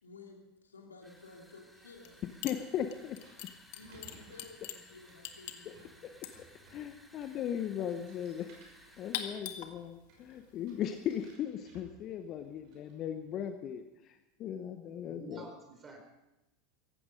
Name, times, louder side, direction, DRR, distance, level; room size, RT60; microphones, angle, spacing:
voice 1, 0.0-2.3 3.7-6.3, left 3 dB, 85° left, 2 dB, 2.7 m, -54 dB
sound 1, 1.0-9.4, equal, 5° right, 2.4 m, -60 dB
sound 2, 1.9-13.5, right 3 dB, 55° right, 6.1 m, -63 dB
sound 3, 2.0-2.2 2.4-11.3, left 11 dB, 60° left, 1.5 m, -45 dB
voice 2, 2.4-3.2 5.7-5.8 6.7-8.5 9.0-15.4, left 9 dB, 40° left, 8 dB, 1.0 m, -37 dB
voice 3, 14.9-16.0, right 3 dB, 25° right, 4 dB, 4.6 m, -50 dB
17.5 x 15.0 x 5.2 m, 0.98 s
figure-of-eight pair, 80°, 0 cm